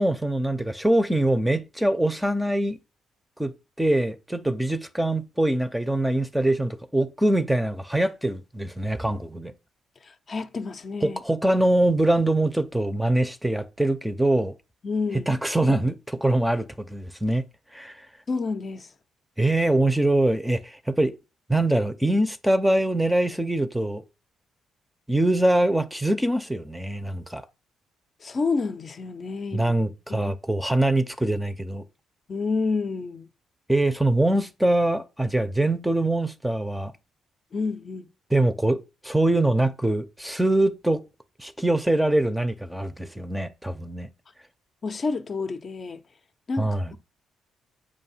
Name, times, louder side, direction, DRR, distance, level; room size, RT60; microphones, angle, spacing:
voice 1, 0.0-2.8 3.4-3.5 3.8-9.5 11.0-14.5 15.3-17.4 17.7-18.0 19.4-21.1 21.5-24.0 25.1-27.4 29.5-31.8 33.7-36.9 38.3-41.1 41.4-44.1 46.6-46.9, right 1 dB, 5° right, 0.6 m, -23 dB
voice 2, 10.3-11.2 14.8-15.3 18.3-18.9 28.2-30.3 32.3-33.3 37.5-38.1 44.8-46.0 46.5-46.7, left 4 dB, 40° left, 0.6 m, -29 dB
7.5 x 2.6 x 5.5 m
cardioid pair, 90°, 0 cm